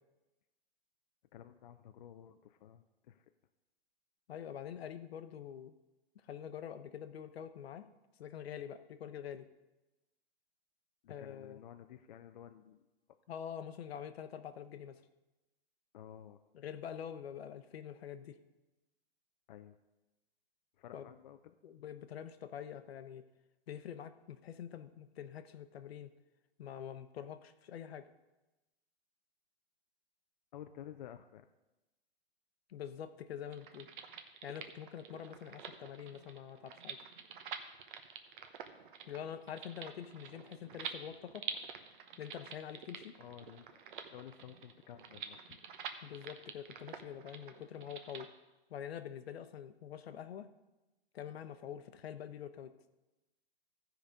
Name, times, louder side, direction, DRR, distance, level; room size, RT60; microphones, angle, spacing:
voice 1, 1.3-3.3 11.0-12.8 15.9-16.4 19.5-19.8 20.8-21.6 30.5-31.5 43.2-43.7 44.1-45.6, left 10 dB, 45° left, 7 dB, 0.5 m, -52 dB
voice 2, 4.3-5.7 6.2-7.9 8.2-9.5 11.1-11.6 13.3-15.0 16.5-18.4 20.9-21.1 21.6-23.2 23.7-26.1 26.6-28.1 32.7-33.9 34.4-37.0 39.1-41.5 42.2-43.2 46.0-48.3 48.7-50.5 51.1-52.7, left 9 dB, 65° left, 11 dB, 0.9 m, -46 dB
sound 1, 33.5-48.3, right 7 dB, 50° right, 1.0 m, -48 dB
15.0 x 5.1 x 5.1 m, 1.1 s
hypercardioid pair, 150°, 32 cm